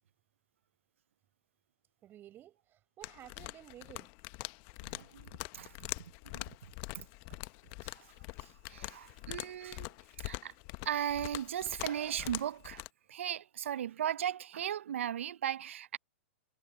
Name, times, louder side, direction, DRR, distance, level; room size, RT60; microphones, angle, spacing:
voice 1, 2.0-4.1, right 12 dB, 30° right, 7.0 m, -53 dB
sound 1, 3.0-12.9, left 27 dB, 45° left, 1.1 m, -44 dB
voice 2, 4.8-5.7 6.3-6.6 7.8-8.1 8.7-9.9 10.2-10.5 10.8-12.8 13.1-16.0, right 10 dB, 70° right, 1.0 m, -37 dB
hypercardioid pair, 115°, 7 cm